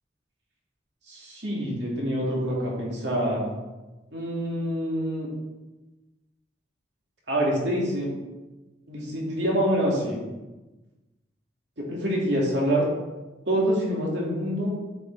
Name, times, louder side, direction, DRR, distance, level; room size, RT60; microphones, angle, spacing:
voice 1, 1.1-3.5 4.1-5.3 7.3-8.1 8.9-10.2 11.8-12.9 13.5-14.7, equal, 75° right, -3 dB, 2.4 m, -26 dB
7.8 x 5.6 x 4.0 m, 1.1 s
head